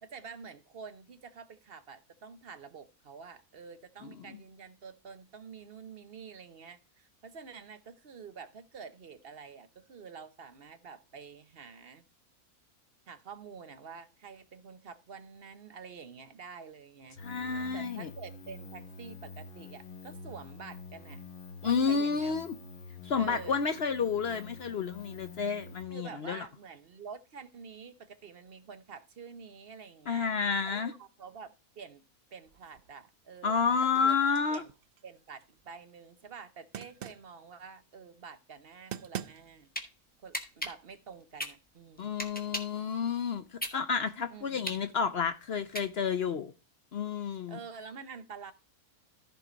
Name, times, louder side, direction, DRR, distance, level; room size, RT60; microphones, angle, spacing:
voice 1, 0.0-12.0 13.1-21.2 21.6-22.4 23.2-23.6 25.9-30.3 30.6-32.0 32.3-34.2 34.5-34.7 35.0-39.7 40.2-42.3 44.3-44.9 47.5-48.5, right 5 dB, 45° right, 0.9 m, -48 dB
voice 2, 17.2-18.1 21.6-22.5 23.0-26.4 30.1-30.9 33.4-34.6 42.0-46.5 46.9-47.6, left 6 dB, 55° left, 0.7 m, -30 dB
sound 1, 17.2-25.8, left 3 dB, 40° left, 1.1 m, -47 dB
sound 2, 32.4-33.1 33.5-35.7 36.7-37.4 38.6-38.7 38.9-39.7, right 10 dB, 75° right, 0.5 m, -44 dB
sound 3, 39.4-39.9 40.3-42.8 43.2-46.3, equal, 5° left, 1.2 m, -38 dB
14.0 x 4.8 x 3.8 m
omnidirectional pair, 1.6 m